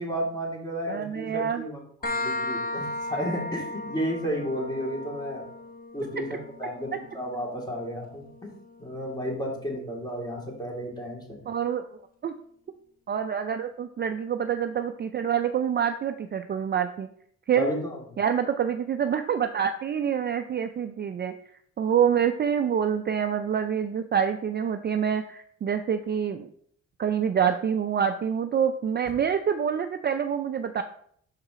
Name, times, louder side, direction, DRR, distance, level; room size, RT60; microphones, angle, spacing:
voice 1, 0.0-5.5 5.9-8.5 8.8-11.4 17.6-18.0, equal, 15° left, -1 dB, 2.4 m, -32 dB
voice 2, 0.9-1.6 11.5-11.9 12.2-12.3 13.1-17.1 17.5-17.7 18.2-21.3 21.8-26.5 27.0-30.8, right 8 dB, 35° right, 8 dB, 0.4 m, -26 dB
sound 1, 2.0-9.4, left 2 dB, 30° left, 1.0 m, -36 dB
6.5 x 4.8 x 3.7 m, 0.63 s
cardioid pair, 90°, 30 cm